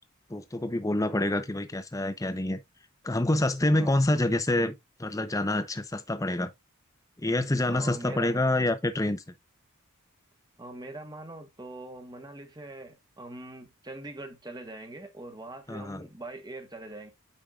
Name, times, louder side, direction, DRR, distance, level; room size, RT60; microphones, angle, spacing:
voice 1, 0.3-2.6 3.0-4.7 5.0-6.5 7.2-9.2 15.7-16.1, left 1 dB, 15° left, 0.7 m, -27 dB
voice 2, 7.7-8.4 10.6-17.1, right 2 dB, 20° right, 1.2 m, -42 dB
8.8 x 5.2 x 2.4 m
head